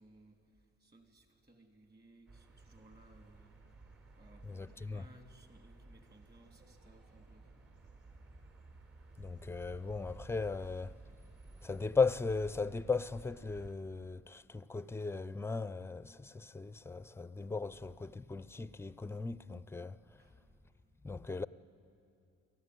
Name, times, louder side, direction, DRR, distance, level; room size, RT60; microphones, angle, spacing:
voice 1, 0.0-3.6 4.2-7.8 17.7-17.8 20.2-20.5 20.9-21.0, right 1 dB, 35° right, 2.9 m, -62 dB
sound 1, 2.3-13.7, right 2 dB, 50° right, 3.4 m, -55 dB
voice 2, 4.4-5.1 9.2-10.9 11.6-20.0 21.0-21.4, left 4 dB, 10° left, 0.5 m, -37 dB
22.5 x 15.0 x 9.6 m
cardioid pair, 90°, 30 cm